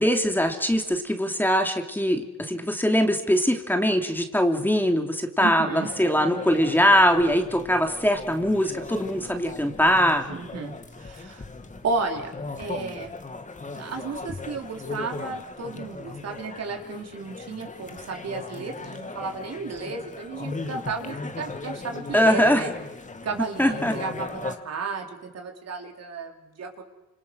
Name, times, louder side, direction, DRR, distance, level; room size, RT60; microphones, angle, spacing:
voice 1, 0.0-10.2 22.1-22.7 23.6-24.0, equal, 5° left, 4 dB, 3.1 m, -22 dB
voice 2, 5.4-5.9 10.3-11.4 11.8-12.3 12.6-13.1 13.7-22.7 23.2-26.8, right 4 dB, 55° right, 3 dB, 4.5 m, -33 dB
sound 1, 5.8-24.6, left 3 dB, 25° left, 2.3 m, -38 dB
29.0 x 27.0 x 6.5 m, 0.99 s
cardioid pair, 90°, 30 cm